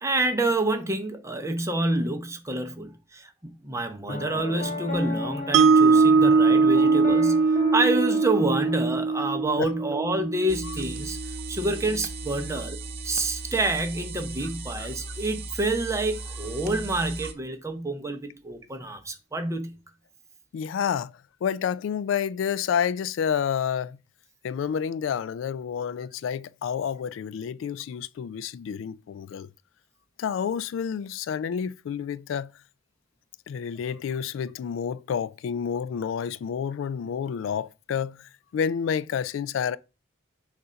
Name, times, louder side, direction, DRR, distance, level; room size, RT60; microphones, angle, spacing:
voice 1, 0.0-11.2 11.5-12.8 13.0-19.8, right 2 dB, 15° right, 0.8 m, -28 dB
Piano, 4.1-9.4, left 2 dB, 40° left, 1.2 m, -35 dB
Mallet percussion, 5.5-11.7, right 4 dB, 85° right, 0.4 m, -21 dB
sound 1, 10.5-17.3, right 3 dB, 55° right, 0.9 m, -37 dB
voice 2, 20.5-21.1 21.4-24.0 24.4-29.5 30.2-32.5 33.5-39.8, left 7 dB, 80° left, 0.3 m, -29 dB
6.7 x 2.5 x 5.6 m
head